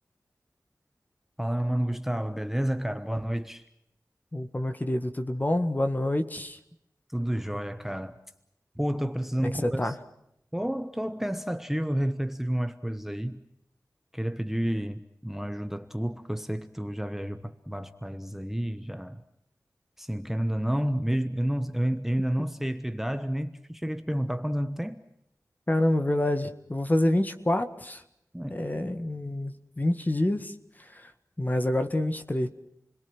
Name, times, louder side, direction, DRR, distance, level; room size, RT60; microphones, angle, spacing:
voice 1, 1.4-3.6 7.1-8.2 8.8-10.0 10.5-13.4 14.1-19.2 20.0-25.0 28.3-28.6, equal, 5° right, 9 dB, 1.1 m, -30 dB
voice 2, 4.3-6.6 9.4-10.0 25.7-28.0 28.5-30.5 30.9-31.1 31.4-32.5, left 1 dB, 25° left, 8 dB, 1.8 m, -27 dB
29.5 x 21.5 x 6.2 m, 0.79 s
wide cardioid pair, 75°, 6 cm